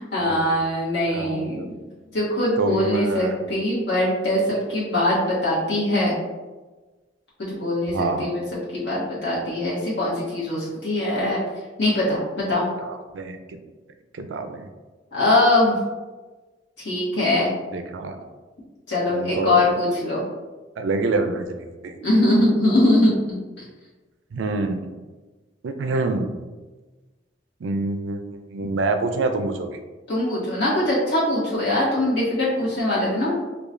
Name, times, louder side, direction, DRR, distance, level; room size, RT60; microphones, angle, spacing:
voice 1, 0.0-1.8 2.1-6.2 7.4-8.4 8.7-11.4 11.8-12.6 15.1-15.8 16.8-17.5 18.9-20.2 22.0-23.7 30.1-33.3, left 1 dB, 70° left, -8 dB, 1.2 m, -22 dB
voice 2, 1.1-1.7 2.6-3.4 7.9-8.3 12.8-13.6 14.1-14.7 17.7-18.3 19.1-19.6 20.8-21.9 24.3-24.9 25.6-26.3 27.6-28.2 28.5-29.7, right 3 dB, 80° right, 7 dB, 0.4 m, -26 dB
4.8 x 2.3 x 2.6 m, 1.2 s
head